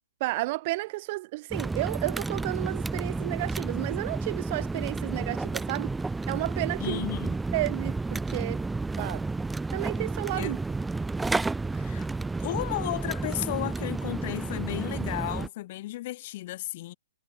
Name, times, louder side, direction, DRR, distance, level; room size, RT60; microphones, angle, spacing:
voice 1, 0.2-5.9 6.3-7.0 7.5-8.6 9.0-9.3 9.7-10.6, right 21 dB, 35° right, 1.8 m, -32 dB
sound 1, 1.5-15.5, right 3 dB, 5° right, 1.2 m, -31 dB
voice 2, 6.8-7.3 10.3-10.6 11.7-12.1 12.4-16.9, left 16 dB, 40° left, 1.0 m, -34 dB
hypercardioid pair, 155°, 0 cm